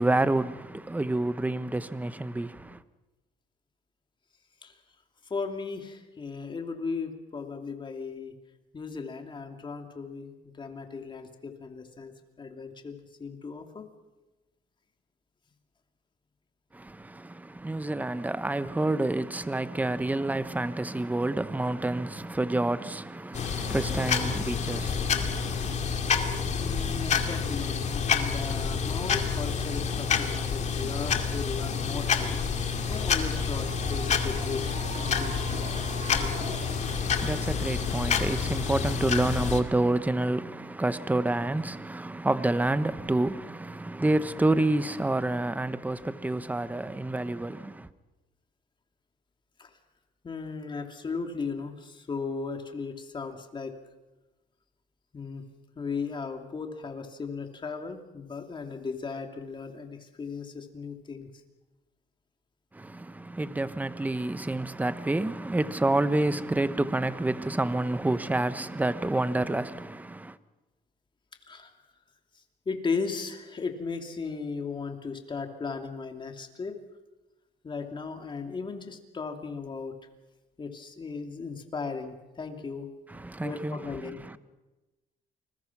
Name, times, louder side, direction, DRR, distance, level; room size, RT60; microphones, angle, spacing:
voice 1, 0.0-2.8 16.7-25.8 36.8-47.9 62.7-70.4 83.1-84.4, right 2 dB, 10° right, 1.0 m, -29 dB
voice 2, 5.2-8.3 8.7-13.9 26.6-36.7 49.6-49.8 50.2-53.8 55.1-55.4 55.8-61.3 71.5-71.7 72.3-76.8 77.6-79.9 80.6-82.9 83.4-84.2, left 4 dB, 30° left, 2.8 m, -36 dB
sound 1, 23.3-39.6, left 6 dB, 45° left, 2.4 m, -28 dB
Human voice / Clapping / Cheering, 32.6-38.6, right 4 dB, 40° right, 3.6 m, -44 dB
29.0 x 21.0 x 6.0 m
cardioid pair, 110°, 17 cm